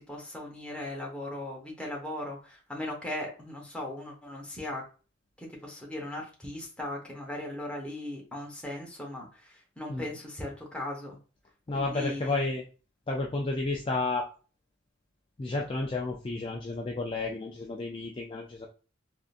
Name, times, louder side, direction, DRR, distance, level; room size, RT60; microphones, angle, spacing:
voice 1, 0.0-4.8 5.4-11.2 11.7-12.6, left 1 dB, 5° left, -1 dB, 0.8 m, -38 dB
voice 2, 11.7-12.6 13.1-14.3 15.4-18.7, left 3 dB, 25° left, 0 dB, 0.3 m, -31 dB
3.6 x 2.6 x 2.4 m, 0.36 s
head